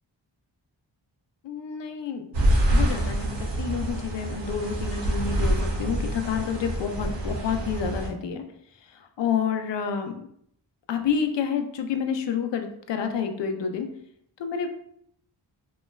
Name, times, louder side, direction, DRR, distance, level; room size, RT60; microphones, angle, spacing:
voice 1, 1.4-2.3 2.7-8.4 8.9-10.3 10.9-13.9 14.4-14.7, left 7 dB, 65° left, 6 dB, 0.5 m, -29 dB
sound 1, 2.3-8.1, right 1 dB, 65° right, 0.7 m, -26 dB
3.0 x 2.1 x 2.2 m, 0.68 s
cardioid pair, 55°, 47 cm